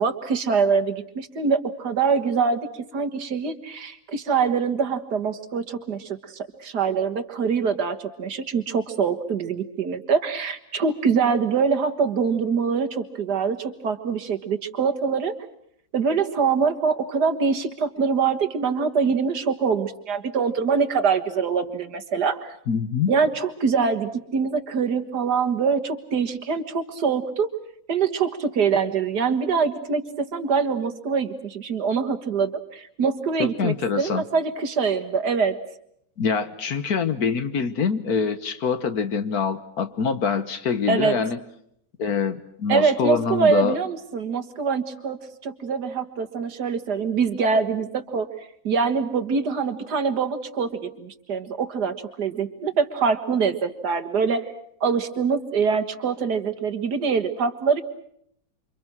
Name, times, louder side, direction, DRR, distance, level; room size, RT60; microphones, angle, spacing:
voice 1, 0.0-2.7 2.9-15.3 15.9-22.6 23.1-27.5 27.9-35.6 40.9-41.1 42.7-48.3 48.6-54.5 54.8-57.8, right 5 dB, 65° right, 9 dB, 2.0 m, -24 dB
voice 2, 22.7-23.1 33.4-34.2 36.2-41.4 42.0-43.8, left 6 dB, 60° left, 11 dB, 1.6 m, -25 dB
29.0 x 25.0 x 6.1 m, 0.71 s
omnidirectional pair, 2.0 m